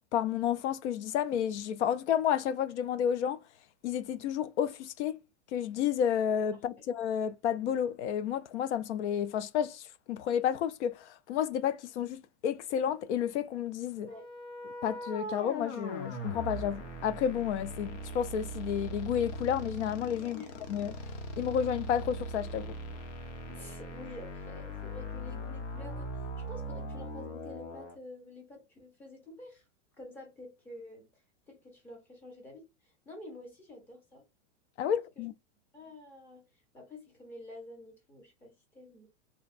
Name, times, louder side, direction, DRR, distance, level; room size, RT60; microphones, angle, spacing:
voice 1, 0.1-3.4 3.8-5.2 5.5-14.1 14.8-20.4 20.7-22.7 34.8-35.3, left 9 dB, 70° left, 0.5 m, -31 dB
sound 1, 14.1-27.9, equal, 90° left, 1.3 m, -40 dB
voice 2, 20.2-20.5 23.5-29.6 30.0-31.1 31.5-34.2 34.9-35.3 35.7-36.4 36.7-39.1, left 2 dB, 5° left, 0.5 m, -49 dB
3.3 x 2.3 x 4.0 m
supercardioid pair, 170°, 36 cm